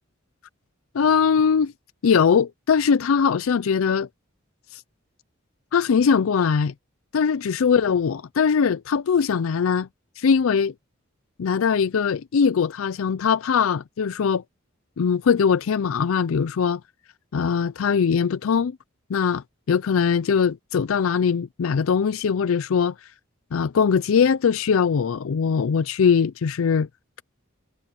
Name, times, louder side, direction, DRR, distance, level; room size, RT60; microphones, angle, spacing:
voice 1, 0.9-1.7 2.0-4.1 4.7-4.8 5.7-6.7 7.1-9.9 10.2-10.7 11.4-14.4 15.0-16.8 17.3-18.8 19.1-22.9 23.5-26.9, left 6 dB, 90° left, 0.4 m, -21 dB
head